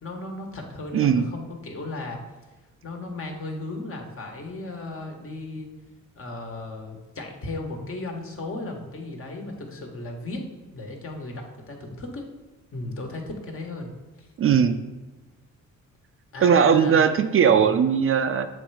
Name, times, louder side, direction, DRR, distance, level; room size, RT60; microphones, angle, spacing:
voice 1, 0.0-2.2 2.8-5.7 6.2-10.5 10.7-12.3 12.7-13.9 14.2-14.3 16.3-17.1 17.5-17.7, left 2 dB, 45° left, 2 dB, 1.4 m, -35 dB
voice 2, 0.9-1.3 14.4-14.8 16.4-18.5, right 7 dB, 45° right, 9 dB, 0.5 m, -19 dB
7.1 x 3.3 x 4.8 m, 1.2 s
cardioid pair, 90°, 30 cm